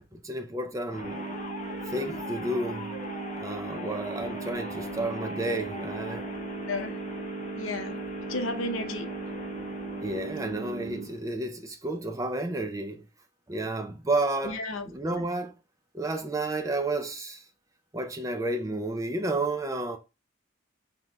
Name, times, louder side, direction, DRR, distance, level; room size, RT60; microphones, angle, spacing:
voice 1, 0.1-1.4 1.9-2.9 3.4-6.3 10.0-13.0 13.5-15.6 15.9-17.4 17.9-20.0, right 2 dB, 15° right, 0.5 m, -31 dB
sound 1, 0.9-11.3, left 1 dB, 35° left, 1.1 m, -41 dB
sound 2, 1.0-11.0, right 4 dB, 75° right, 0.8 m, -38 dB
voice 2, 6.7-7.0 7.6-8.0 8.3-9.1 14.4-15.3, left 2 dB, 75° left, 0.7 m, -33 dB
3.7 x 3.6 x 2.9 m
head